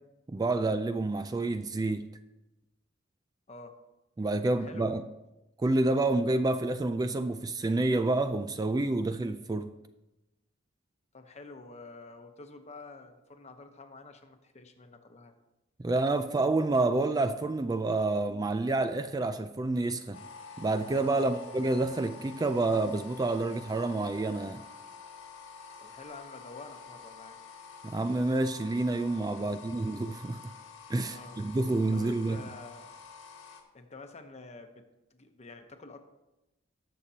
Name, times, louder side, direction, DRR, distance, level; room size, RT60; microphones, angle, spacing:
voice 1, 0.3-2.1 4.2-5.0 5.6-9.7 15.8-20.2 20.6-24.6 27.8-30.4 30.9-32.4, right 2 dB, 20° right, 0.3 m, -28 dB
voice 2, 4.5-4.9 11.1-15.3 21.1-21.3 25.8-27.4 29.4-29.6 31.1-31.4 31.9-32.9 33.7-34.8 35.1-36.0, left 3 dB, 35° left, 0.9 m, -48 dB
sound 1, 20.1-33.6, left 5 dB, 80° left, 1.7 m, -48 dB
19.5 x 6.7 x 2.8 m
head